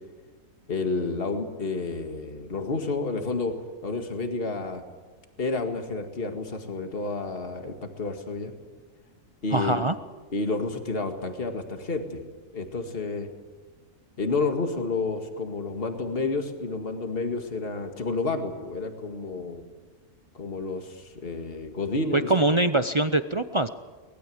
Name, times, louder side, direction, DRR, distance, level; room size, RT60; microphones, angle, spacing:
voice 1, 0.7-3.5 3.8-4.8 5.4-8.5 9.4-9.8 10.3-12.2 12.5-13.3 14.2-19.6 20.3-22.3, left 3 dB, 40° left, 5 dB, 2.2 m, -30 dB
voice 2, 9.5-10.0 22.1-23.7, right 2 dB, 40° right, 10 dB, 0.4 m, -23 dB
23.5 x 20.0 x 7.9 m, 1.4 s
omnidirectional pair, 1.5 m